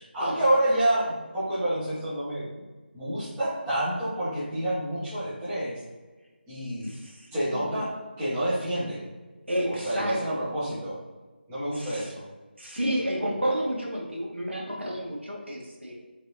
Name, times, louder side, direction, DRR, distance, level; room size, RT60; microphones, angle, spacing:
voice 1, 0.0-2.5 2.9-5.8 6.5-6.9 7.3-7.9 8.2-9.1 9.6-11.0 11.5-12.2, right 1 dB, 10° right, -12 dB, 1.2 m, -28 dB
voice 2, 6.8-7.8 9.5-10.4 11.7-12.1 12.6-16.0, equal, 85° right, -2 dB, 1.4 m, -31 dB
4.4 x 3.4 x 2.7 m, 1.2 s
figure-of-eight pair, 160°, 6 cm